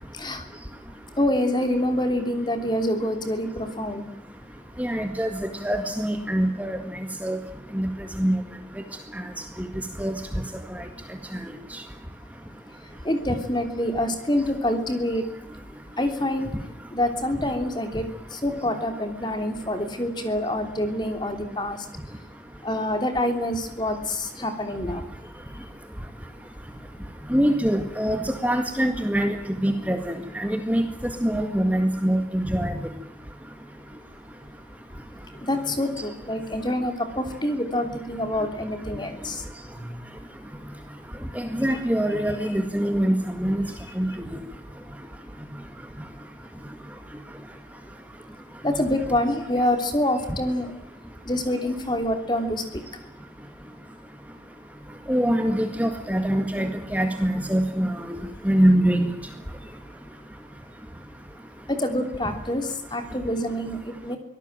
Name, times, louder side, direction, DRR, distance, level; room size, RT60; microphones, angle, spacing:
voice 1, 0.1-0.5 1.2-4.0 13.0-15.3 16.0-16.5 16.9-21.8 22.6-25.0 35.4-39.4 39.8-40.0 48.6-50.8 51.2-52.8 61.7-64.2, left 1 dB, 25° left, 6 dB, 3.1 m, -26 dB
voice 2, 4.8-6.8 7.2-7.4 7.7-7.9 8.2-8.4 9.6-9.7 10.0-10.2 10.7-10.8 27.3-29.4 29.6-30.8 31.2-32.7 41.4-43.7 44.0-44.1 55.1-58.2 58.5-59.1, equal, 10° right, 5 dB, 1.8 m, -23 dB
24.5 x 18.0 x 9.0 m, 0.85 s
head